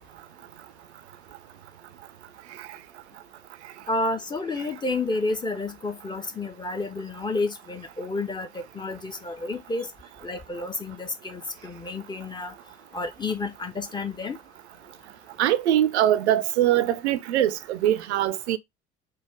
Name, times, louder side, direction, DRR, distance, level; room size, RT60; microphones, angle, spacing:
voice 1, 3.9-9.9 10.2-12.5 12.9-14.4, left 3 dB, 15° left, 0.5 m, -30 dB
voice 2, 15.4-18.6, right 12 dB, 70° right, 0.5 m, -22 dB
3.3 x 2.1 x 3.3 m
figure-of-eight pair, 60°, 35 cm